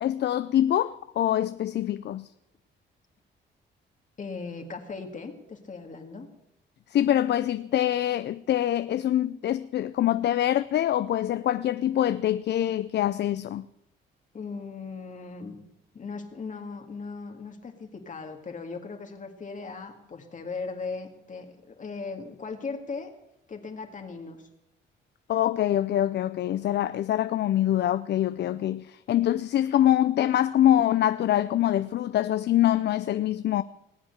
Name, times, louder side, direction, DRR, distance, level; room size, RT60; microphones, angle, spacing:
voice 1, 0.0-2.3 6.9-13.7 25.3-33.6, left 12 dB, 60° left, 0.5 m, -24 dB
voice 2, 4.2-6.3 14.3-15.6 15.9-23.1 23.5-24.5, left 4 dB, 40° left, 2.0 m, -38 dB
19.5 x 7.8 x 8.0 m
cardioid pair, 90°, 20 cm